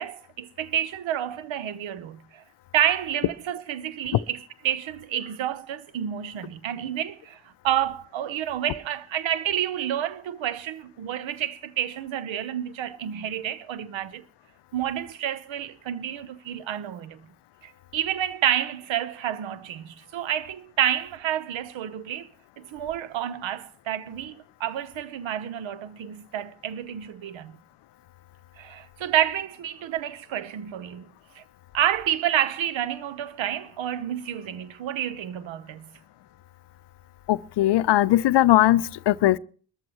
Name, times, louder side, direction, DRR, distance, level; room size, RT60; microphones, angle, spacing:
voice 1, 0.0-2.4 2.7-4.4 4.6-14.2 14.7-17.2 17.6-22.3 22.6-27.6 28.6-31.1 31.4-31.5 31.7-35.9, right 11 dB, 65° right, 1.0 m, -29 dB
voice 2, 37.3-39.4, left 14 dB, 55° left, 0.6 m, -19 dB
22.5 x 14.0 x 3.0 m
hypercardioid pair, 45°, 50 cm